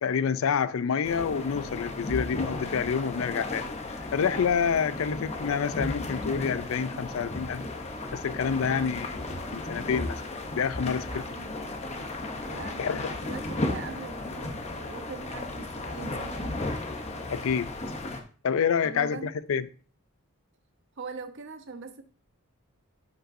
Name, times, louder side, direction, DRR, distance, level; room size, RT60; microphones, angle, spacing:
voice 1, 0.0-7.6 8.1-10.2 10.5-11.2 12.8-13.1 17.3-17.7 18.4-19.7, left 6 dB, 65° left, 0.4 m, -28 dB
sound 1, 1.0-18.2, left 2 dB, 30° left, 0.8 m, -35 dB
sound 2, 8.2-17.6, equal, ahead, 0.7 m, -51 dB
voice 2, 8.6-8.9 11.1-11.5 12.5-16.7 18.8-19.6 21.0-22.0, right 4 dB, 55° right, 0.7 m, -42 dB
10.0 x 5.3 x 2.6 m
head